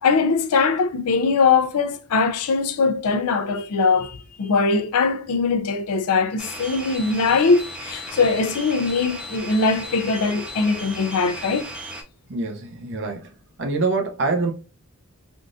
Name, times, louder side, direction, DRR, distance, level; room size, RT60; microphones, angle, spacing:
voice 1, 0.0-11.7, left 4 dB, 75° left, 0.4 m, -21 dB
sound 1, 6.4-12.0, equal, 5° right, 0.4 m, -36 dB
voice 2, 12.3-13.3 13.6-14.5, right 3 dB, 55° right, 0.7 m, -25 dB
3.6 x 2.4 x 2.5 m
head